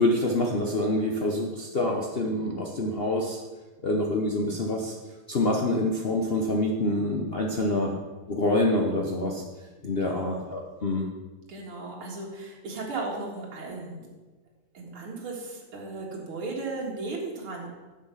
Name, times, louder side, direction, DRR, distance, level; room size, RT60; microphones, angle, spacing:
voice 1, 0.0-3.4 3.8-4.9 5.3-7.9 8.3-9.4 9.8-11.1, left 1 dB, 75° left, 0 dB, 0.5 m, -26 dB
voice 2, 7.6-8.0 10.0-10.4 11.5-14.0 14.7-17.7, right 3 dB, 75° right, -3 dB, 2.8 m, -36 dB
10.0 x 6.8 x 5.7 m, 1.3 s
omnidirectional pair, 2.4 m